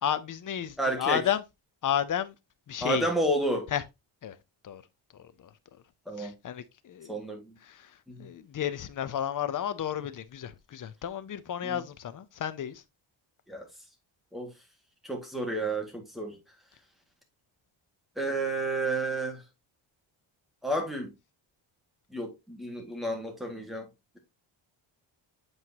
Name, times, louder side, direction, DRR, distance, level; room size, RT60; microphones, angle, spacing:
voice 1, 0.0-1.4 1.8-2.3 2.7-3.1 3.7-3.8 4.2-4.3 4.6-4.8 5.2-5.3 6.2-7.2 7.7-7.8 8.2-12.8, left 9 dB, 40° left, 0.7 m, -32 dB
voice 2, 0.8-1.2 2.8-3.7 6.1-6.3 7.1-7.5 8.1-8.3 11.6-11.8 13.5-13.7 14.3-14.5 15.0-16.4 18.2-19.4 20.6-21.1 22.1-23.9, right 1 dB, ahead, 1.9 m, -31 dB
8.0 x 4.5 x 2.8 m
cardioid pair, 130°, 48 cm